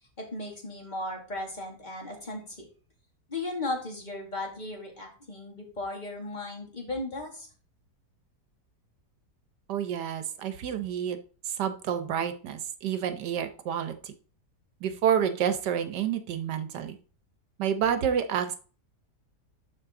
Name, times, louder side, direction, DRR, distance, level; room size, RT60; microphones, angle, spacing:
voice 1, 0.2-2.7 3.3-7.5, left 2 dB, 25° left, 0 dB, 2.3 m, -36 dB
voice 2, 9.7-11.2 11.4-14.1 14.8-17.0 17.6-18.6, right 8 dB, 80° right, 9 dB, 1.5 m, -29 dB
11.5 x 4.8 x 3.7 m, 0.39 s
omnidirectional pair, 1.8 m